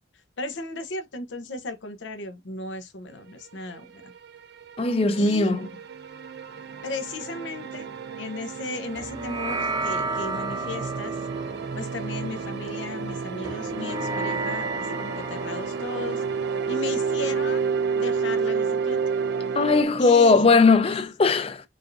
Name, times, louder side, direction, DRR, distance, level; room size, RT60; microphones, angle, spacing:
voice 1, 0.4-4.1 5.1-5.5 6.8-11.2 11.7-16.2 16.7-19.0 20.0-20.4, left 3 dB, 80° left, 0.8 m, -36 dB
sound 1, 3.7-19.8, right 5 dB, 60° right, 0.4 m, -30 dB
voice 2, 4.8-5.7 19.5-21.6, left 4 dB, 35° left, 0.5 m, -19 dB
sound 2, 9.0-17.7, right 3 dB, 20° right, 0.7 m, -33 dB
4.8 x 2.6 x 2.6 m
head